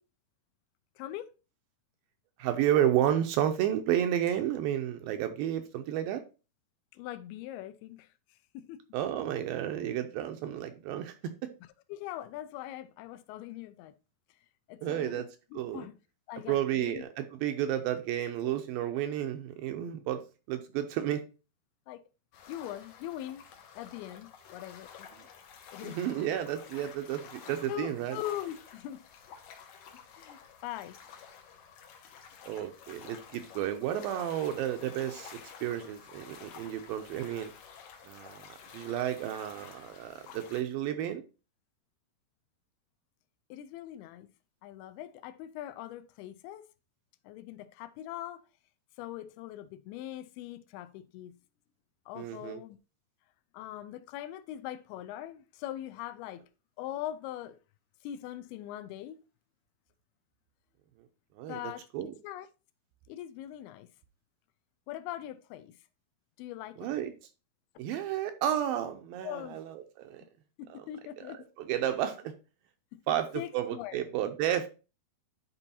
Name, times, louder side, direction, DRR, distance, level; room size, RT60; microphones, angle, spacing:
voice 1, 1.0-1.3 6.9-8.1 8.5-8.8 11.9-13.9 14.7-15.2 15.5-15.9 16.3-17.0 21.9-22.0 22.5-23.4 23.8-25.1 25.7-26.0 27.6-29.0 30.2-31.0 43.5-44.3 44.6-46.6 47.2-48.4 49.0-51.4 52.1-52.8 53.5-56.4 56.8-57.6 58.0-59.2 61.5-61.8 62.2-62.5 63.1-63.9 64.9-65.8 66.4-66.9 69.2-69.6 70.6-71.5 72.9-74.0 74.5-74.7, left 13 dB, 85° left, 2.5 m, -41 dB
voice 2, 2.4-6.2 8.9-11.3 14.8-15.3 15.6-15.9 16.5-20.2 20.5-21.2 25.8-28.2 32.5-37.5 38.1-41.2 52.2-52.6 61.4-62.1 66.8-67.1 67.8-70.2 70.7-70.8 71.6-72.3 73.1-73.3 73.5-74.7, right 11 dB, 80° right, 2.2 m, -31 dB
sound 1, 22.3-40.6, left 7 dB, 70° left, 1.9 m, -51 dB
11.0 x 4.5 x 2.7 m
omnidirectional pair, 4.5 m